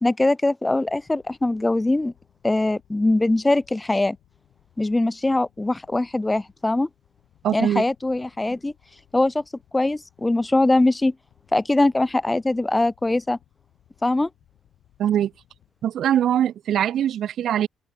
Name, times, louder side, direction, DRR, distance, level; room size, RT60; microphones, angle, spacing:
voice 1, 0.0-2.1 2.4-4.2 4.8-6.9 7.5-8.7 9.1-9.4 9.7-11.1 11.5-13.4 14.0-14.3, left 2 dB, 15° left, 0.5 m, -22 dB
sound 1, 0.8-15.9, left 13 dB, 80° left, 4.6 m, -60 dB
voice 2, 7.4-7.8 15.0-15.3 15.8-17.7, right 10 dB, 70° right, 0.5 m, -22 dB
open air
cardioid pair, 90°, 0 cm